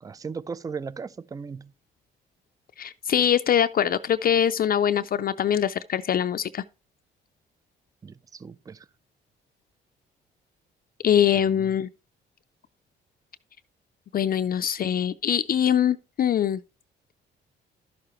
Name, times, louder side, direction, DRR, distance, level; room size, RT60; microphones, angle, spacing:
voice 1, 0.0-1.7 8.0-8.9 11.3-11.7, right 5 dB, 20° right, 0.4 m, -37 dB
voice 2, 2.8-6.6 11.0-11.9 14.1-16.6, left 9 dB, 45° left, 0.4 m, -23 dB
11.5 x 6.7 x 3.0 m
cardioid pair, 90°, 20 cm